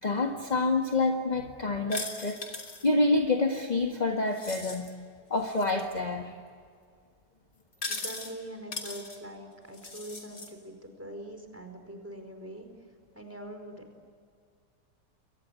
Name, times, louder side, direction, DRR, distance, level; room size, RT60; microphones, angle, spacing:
voice 1, 0.0-2.4 2.8-4.9 5.3-6.3, left 2 dB, 25° left, 4 dB, 1.7 m, -27 dB
sound 1, 1.9-2.9 4.3-4.9 5.5-5.8 7.7-8.3 8.7-9.2 9.7-10.5, left 3 dB, 55° left, 3.7 m, -38 dB
voice 2, 7.9-12.7 13.1-13.9, right 1 dB, 10° right, 5 dB, 4.7 m, -43 dB
29.0 x 23.5 x 8.4 m, 2.1 s
omnidirectional pair, 1.8 m